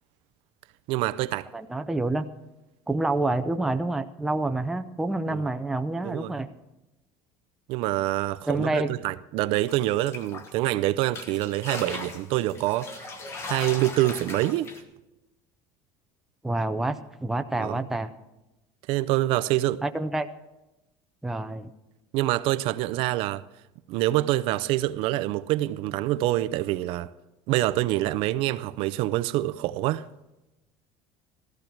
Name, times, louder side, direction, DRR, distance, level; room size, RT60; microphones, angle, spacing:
voice 1, 0.9-1.5 5.3-5.4 6.0-6.4 7.7-13.1 13.4-14.7 17.6-17.9 18.9-19.8 22.1-23.4 23.9-27.1 27.5-30.0, right 16 dB, 55° right, 0.5 m, -26 dB
voice 2, 1.5-2.2 2.9-6.5 8.5-8.9 16.4-18.1 19.8-20.3 21.2-21.7, right 2 dB, 5° right, 0.5 m, -28 dB
sound 1, 9.7-10.7 11.1-14.8, left 3 dB, 25° left, 1.2 m, -38 dB
15.5 x 14.0 x 4.5 m
cardioid pair, 175°, 11 cm